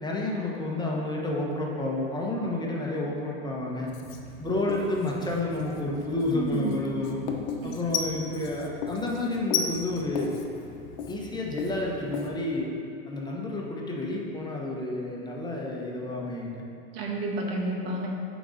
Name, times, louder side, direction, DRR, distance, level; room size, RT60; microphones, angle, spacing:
voice 1, 0.0-3.9 4.4-7.2 7.6-10.3 11.1-12.7 13.1-16.6, left 2 dB, 15° left, -2 dB, 0.9 m, -30 dB
Writing, 3.9-12.3, left 7 dB, 75° left, 0.9 m, -36 dB
voice 2, 6.3-6.8 7.6-7.7 16.9-18.1, right 3 dB, 75° right, 0 dB, 1.4 m, -30 dB
7.6 x 4.1 x 5.0 m, 2.6 s
supercardioid pair, 120°, 30 cm